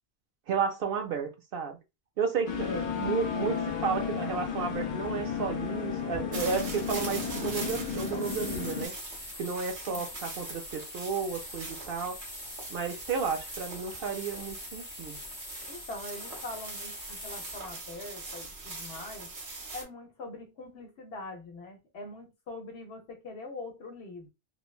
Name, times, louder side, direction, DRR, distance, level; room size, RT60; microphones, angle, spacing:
voice 1, 0.5-1.8 2.2-8.9 9.4-12.2 12.7-15.2, right 6 dB, 65° right, 0.7 m, -32 dB
sound 1, 2.5-8.9, left 7 dB, 55° left, 0.6 m, -33 dB
voice 2, 2.7-3.0 9.9-10.1 15.7-19.3 19.7-24.3, left 2 dB, 75° left, 1.0 m, -43 dB
sound 2, 6.3-19.8, right 2 dB, 85° right, 1.2 m, -42 dB
sound 3, 8.1-17.7, left 1 dB, 20° left, 1.0 m, -44 dB
3.1 x 2.1 x 2.3 m
omnidirectional pair, 1.1 m